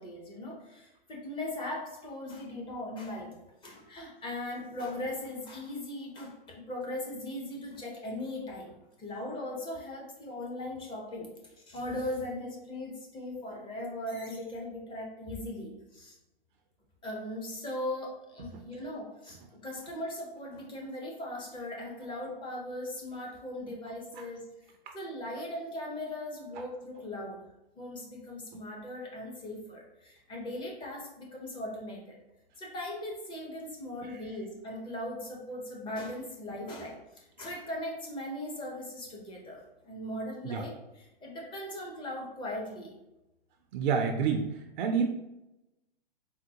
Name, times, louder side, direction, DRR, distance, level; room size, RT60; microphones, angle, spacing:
voice 1, 0.0-3.4 3.6-8.7 9.0-11.3 11.7-16.2 17.0-24.4 24.9-27.4 27.8-32.2 32.6-43.0, left 1 dB, 15° left, -2 dB, 0.7 m, -39 dB
voice 2, 43.7-44.4 44.8-45.1, right 6 dB, 55° right, 4 dB, 0.4 m, -28 dB
3.7 x 2.1 x 2.8 m, 0.93 s
hypercardioid pair, 120°, 29 cm